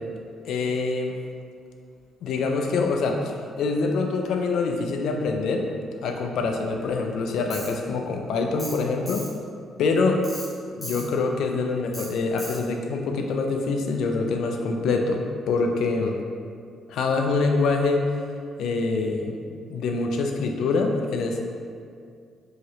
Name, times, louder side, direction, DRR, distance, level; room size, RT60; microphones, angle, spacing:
voice 1, 0.5-1.1 2.2-5.7 6.0-9.3 9.8-10.2 10.7-16.2 16.9-18.1 18.6-19.4 19.7-21.4, left 3 dB, 75° left, 3 dB, 0.3 m, -25 dB
Tools, 7.5-7.7 8.6-8.8 9.1-9.3 10.2-10.5 10.8-11.0 11.9-12.1 12.4-12.6, equal, 15° left, 1.1 m, -36 dB
2.9 x 2.8 x 2.8 m, 2.2 s
cardioid pair, 90°, 0 cm